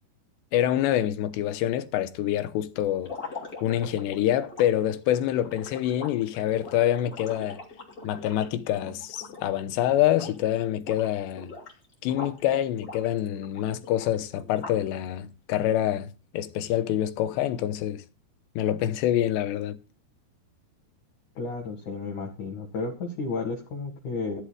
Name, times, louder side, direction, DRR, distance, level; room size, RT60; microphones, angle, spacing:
voice 1, 0.5-3.1 3.6-7.6 8.0-11.5 12.0-18.0 18.6-19.8, left 12 dB, 85° left, 3.1 m, -26 dB
sound 1, 3.0-9.7 10.0-10.5 10.8-12.4 12.8-15.0, left 3 dB, 25° left, 2.5 m, -42 dB
voice 2, 21.4-24.4, left 4 dB, 50° left, 2.8 m, -32 dB
15.0 x 11.5 x 2.3 m
omnidirectional pair, 5.0 m